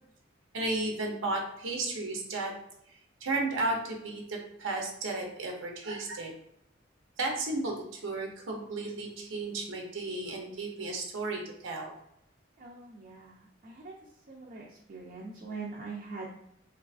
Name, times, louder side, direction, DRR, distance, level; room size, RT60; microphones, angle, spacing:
voice 1, 0.5-2.5 3.2-6.3 7.2-11.9, right 2 dB, 85° right, 1 dB, 0.6 m, -34 dB
voice 2, 12.6-13.9 14.3-16.3, right 4 dB, 45° right, -3 dB, 0.4 m, -43 dB
3.3 x 2.3 x 2.4 m, 0.75 s
head